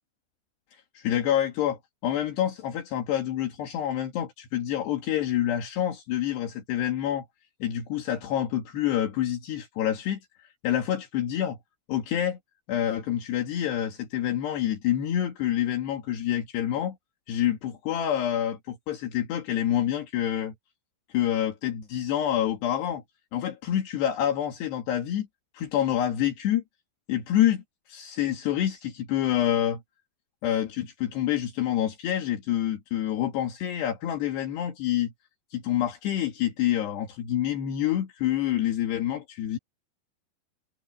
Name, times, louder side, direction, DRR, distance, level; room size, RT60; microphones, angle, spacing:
voice 1, 0.7-7.3 7.6-11.6 11.9-12.4 12.7-17.0 17.3-20.5 21.1-23.0 23.3-25.3 25.5-26.6 27.1-27.6 27.9-29.8 30.4-35.1 35.5-39.6, left 11 dB, 75° left, 4.1 m, -27 dB
omnidirectional pair, 5.0 m